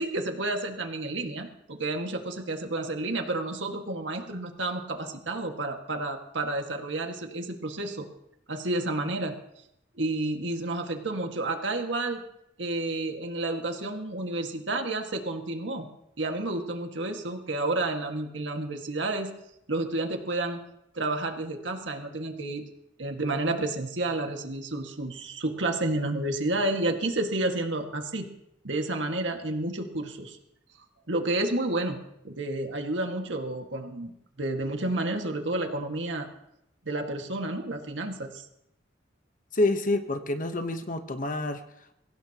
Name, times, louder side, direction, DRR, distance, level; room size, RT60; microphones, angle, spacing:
voice 1, 0.0-8.1 8.5-9.3 10.0-12.2 12.6-15.9 16.2-19.3 19.7-20.6 20.9-22.6 23.0-28.3 28.6-30.4 31.1-32.0 32.2-34.1 34.4-36.3 36.9-38.4, right 2 dB, 85° right, 4 dB, 1.9 m, -30 dB
voice 2, 39.5-41.6, left 2 dB, 45° left, 8 dB, 1.1 m, -27 dB
23.0 x 16.5 x 3.0 m, 0.83 s
head